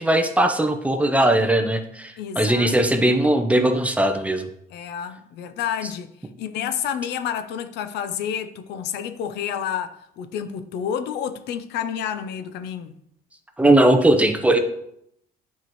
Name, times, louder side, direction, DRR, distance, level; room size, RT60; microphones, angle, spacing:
voice 1, 0.0-4.5 13.6-14.6, right 1 dB, 10° right, 0.7 m, -19 dB
voice 2, 2.2-2.8 4.7-12.9, left 9 dB, 80° left, 0.6 m, -30 dB
9.5 x 4.7 x 3.1 m
cardioid pair, 110°, 17 cm